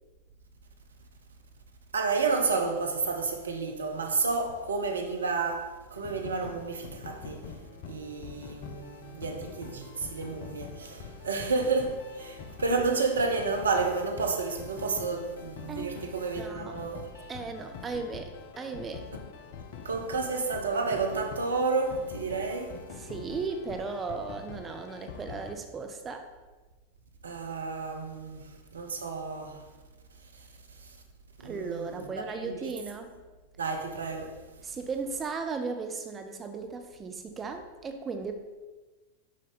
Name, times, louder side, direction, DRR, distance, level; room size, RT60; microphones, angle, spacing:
voice 1, 1.9-7.4 7.9-17.3 19.8-22.7 27.2-29.6 30.4-30.5 31.4-32.1 32.4-32.7 33.6-34.3, right 4 dB, 70° right, 0.8 m, -31 dB
sound 1, 5.9-25.5, left 6 dB, 50° left, 0.6 m, -45 dB
voice 2, 16.4-16.8 17.3-19.1 22.9-26.3 31.4-33.1 34.6-38.3, right 4 dB, 20° right, 0.5 m, -36 dB
6.3 x 5.3 x 4.0 m
figure-of-eight pair, 90°, 0 cm